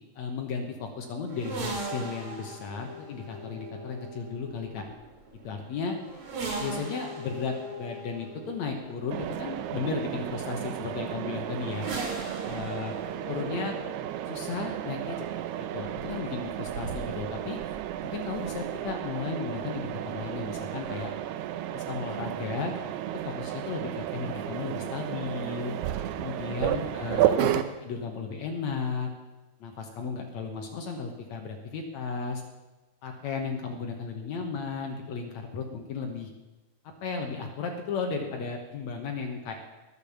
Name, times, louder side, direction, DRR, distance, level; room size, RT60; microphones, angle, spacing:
voice 1, 0.2-4.8 5.4-6.0 6.6-11.9 12.5-12.9 13.3-13.8 14.3-15.3 15.7-17.6 18.0-21.1 21.7-22.7 23.2-25.8 26.2-29.1 29.6-32.4 33.0-36.3 37.0-39.6, left 5 dB, 70° left, 3 dB, 1.7 m, -34 dB
sound 1, 1.3-19.0 20.1-21.1, right 2 dB, 45° right, 3.5 m, -41 dB
Mechanisms, 9.1-27.6, right 12 dB, 80° right, 2.7 m, -33 dB
20.5 x 6.9 x 6.9 m, 1.1 s
omnidirectional pair, 4.7 m